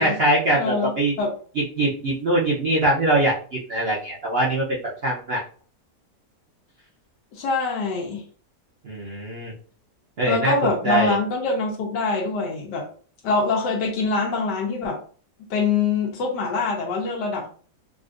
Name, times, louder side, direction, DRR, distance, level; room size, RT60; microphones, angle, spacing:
voice 1, 0.0-1.1 1.8-5.4 8.8-9.5 10.2-10.5 10.8-11.2, right 1 dB, 55° right, -5 dB, 0.7 m, -22 dB
voice 2, 0.5-1.3 7.3-8.2 10.2-12.9 13.2-15.0 15.5-17.5, left 4 dB, 85° left, -1 dB, 1.3 m, -24 dB
3.8 x 2.5 x 2.5 m, 0.43 s
omnidirectional pair, 1.8 m